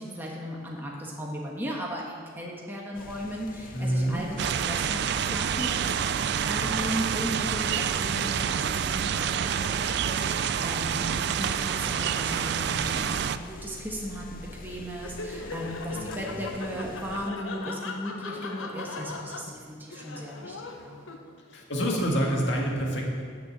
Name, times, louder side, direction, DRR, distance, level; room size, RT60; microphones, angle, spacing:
voice 1, 0.0-21.0, equal, 10° right, -3 dB, 1.3 m, -36 dB
sound 1, 2.9-17.3, left 3 dB, 45° left, 0.5 m, -45 dB
voice 2, 3.7-4.3 6.6-6.9 15.9-16.4 21.5-23.1, equal, 65° left, -1 dB, 1.9 m, -28 dB
sound 2, 4.4-13.4, right 8 dB, 55° right, 0.3 m, -28 dB
Laughter, 15.0-21.5, left 3 dB, 90° left, 0.8 m, -39 dB
9.9 x 6.7 x 7.4 m, 2.1 s
head